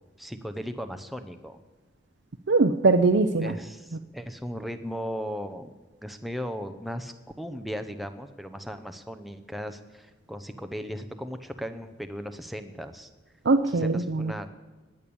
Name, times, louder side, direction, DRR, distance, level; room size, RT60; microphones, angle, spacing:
voice 1, 0.2-1.6 3.4-5.7 6.0-13.1 13.8-14.5, equal, ahead, 8 dB, 0.7 m, -37 dB
voice 2, 2.5-3.6 13.4-14.5, right 3 dB, 75° right, 7 dB, 0.6 m, -22 dB
19.5 x 8.7 x 7.0 m, 1.2 s
head